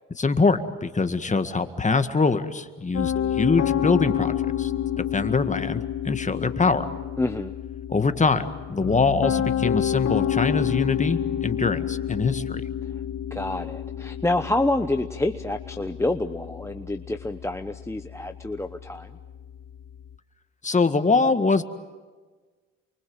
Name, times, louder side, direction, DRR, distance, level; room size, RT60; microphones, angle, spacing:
voice 1, 0.2-4.7 5.0-6.9 7.9-12.6 20.6-21.6, left 4 dB, 25° left, 9 dB, 1.9 m, -23 dB
Piano, 2.9-20.1, left 10 dB, 55° left, 1.4 m, -29 dB
voice 2, 7.2-7.5 13.3-19.2, left 2 dB, 10° left, 7 dB, 0.9 m, -27 dB
29.0 x 24.0 x 8.0 m, 1.4 s
cardioid pair, 90°, 30 cm